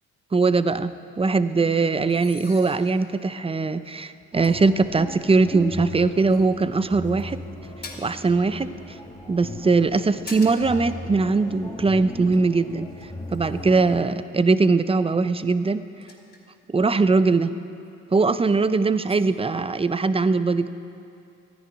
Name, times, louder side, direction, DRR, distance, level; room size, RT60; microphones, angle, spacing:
voice 1, 0.3-0.9 1.2-7.4 8.0-8.7 9.3-12.9 13.3-15.8 16.7-17.5 18.1-20.7, right 3 dB, 20° right, 13 dB, 0.6 m, -21 dB
sound 1, 2.1-3.2 3.8-3.9 4.4-4.5 5.7-6.0 6.3-7.2 7.8-8.3 9.8-10.8 11.1-11.3 12.0-14.0 15.4-16.9 17.9-18.0 18.2-18.6 19.0-19.2, left 3 dB, 35° left, 2.7 m, -45 dB
sound 2, 4.3-14.0, left 1 dB, 10° left, 1.7 m, -37 dB
13.0 x 10.5 x 10.0 m, 2.6 s
cardioid pair, 90°, 30 cm